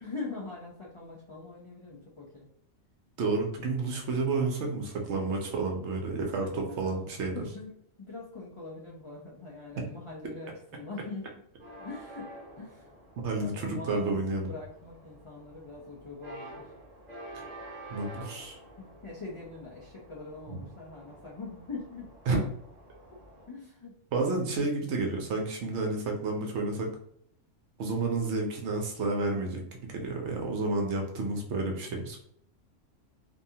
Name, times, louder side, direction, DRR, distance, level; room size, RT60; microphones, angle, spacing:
voice 1, 0.0-2.5 6.4-11.3 11.8-12.3 12.5-12.9 13.4-16.7 18.8-22.1 23.5-23.9, left 3 dB, 50° left, -5 dB, 0.3 m, -43 dB
voice 2, 3.2-7.4 13.2-14.5 17.3-17.4 17.9-18.6 20.5-20.6 22.3-22.4 24.1-26.9 27.8-32.2, right 3 dB, 65° right, 2 dB, 0.9 m, -30 dB
sound 1, 11.6-23.5, right 1 dB, 35° right, 1.0 m, -49 dB
2.6 x 2.3 x 2.7 m, 0.68 s
omnidirectional pair, 1.4 m